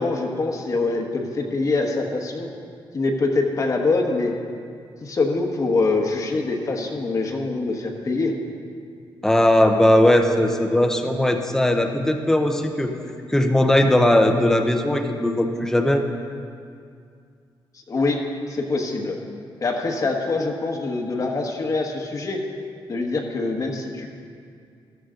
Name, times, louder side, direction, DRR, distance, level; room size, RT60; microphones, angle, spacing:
voice 1, 0.0-2.5 2.9-4.3 5.0-8.3 17.9-18.2 18.5-19.2 19.6-22.4 22.9-24.1, left 3 dB, 40° left, 2 dB, 1.2 m, -24 dB
voice 2, 9.2-12.9 13.3-16.0, left 1 dB, 5° left, 4 dB, 0.8 m, -18 dB
14.0 x 12.5 x 3.8 m, 2.3 s
wide cardioid pair, 135°, 9 cm